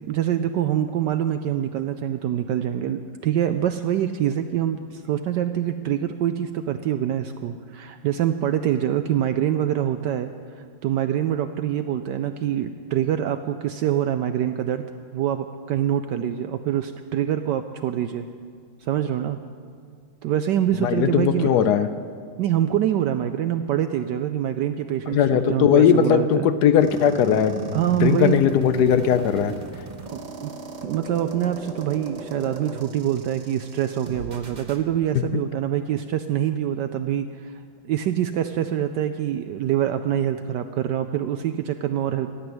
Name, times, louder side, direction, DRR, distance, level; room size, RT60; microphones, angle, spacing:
voice 1, 0.1-14.9 15.1-18.3 18.8-19.4 20.2-21.5 22.4-26.5 27.7-28.4 30.1-30.5 30.8-42.3, right 10 dB, 75° right, 8 dB, 1.0 m, -25 dB
voice 2, 20.8-21.9 25.1-29.5 35.3-35.4, left 8 dB, 70° left, 12 dB, 1.0 m, -19 dB
sound 1, 26.8-34.8, right 4 dB, 35° right, 0.7 m, -38 dB
13.5 x 9.7 x 7.9 m, 2.1 s
omnidirectional pair, 2.2 m